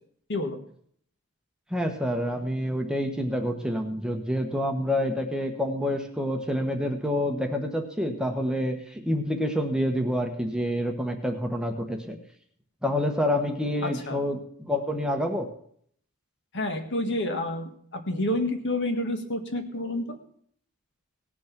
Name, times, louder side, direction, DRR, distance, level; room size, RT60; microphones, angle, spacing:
voice 1, 1.7-12.2 12.8-15.5, left 1 dB, 5° right, 4 dB, 1.1 m, -28 dB
voice 2, 13.8-14.2 16.5-20.2, left 1 dB, 55° left, 6 dB, 1.7 m, -29 dB
18.0 x 6.3 x 5.9 m, 0.62 s
head